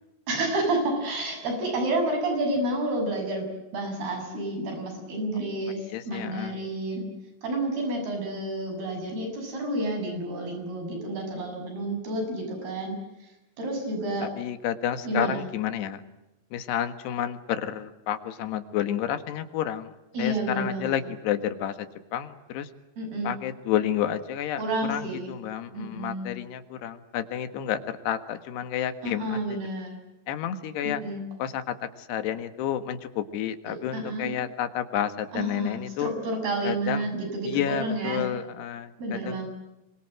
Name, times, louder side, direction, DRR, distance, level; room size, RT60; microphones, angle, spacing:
voice 1, 0.3-3.5 3.7-5.8 6.1-7.1 7.4-13.0 13.6-14.3 15.1-15.4 20.1-21.0 23.0-23.3 24.6-25.3 25.7-26.3 29.0-30.0 30.8-31.2 33.7-34.3 35.3-38.2 39.0-39.5, right 1 dB, 65° right, 5 dB, 8.9 m, -30 dB
voice 2, 5.7-6.6 14.2-16.0 16.5-19.9 20.2-22.7 23.2-24.6 24.9-29.6 30.3-31.0 31.4-36.1 36.6-37.1 37.4-39.5, left 10 dB, 80° left, 10 dB, 3.7 m, -30 dB
27.0 x 24.5 x 7.7 m, 0.98 s
omnidirectional pair, 4.8 m